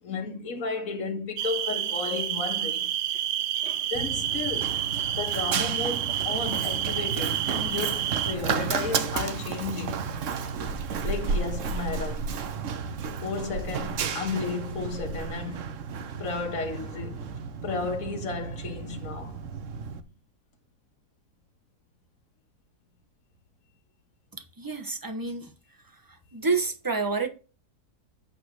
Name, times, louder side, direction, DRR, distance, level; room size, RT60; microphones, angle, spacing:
voice 1, 0.0-2.9 3.6-4.8 5.1-10.1 11.0-12.3 13.2-15.6 16.2-17.3 17.6-19.4, left 4 dB, 60° left, 1.8 m, -33 dB
sound 1, 1.4-8.4, right 11 dB, 75° right, 0.6 m, -29 dB
Run, 3.9-20.0, right 5 dB, 60° right, 1.0 m, -32 dB
voice 2, 24.6-25.5 26.3-27.3, right 4 dB, 15° right, 1.0 m, -28 dB
8.6 x 4.1 x 6.3 m
omnidirectional pair, 1.7 m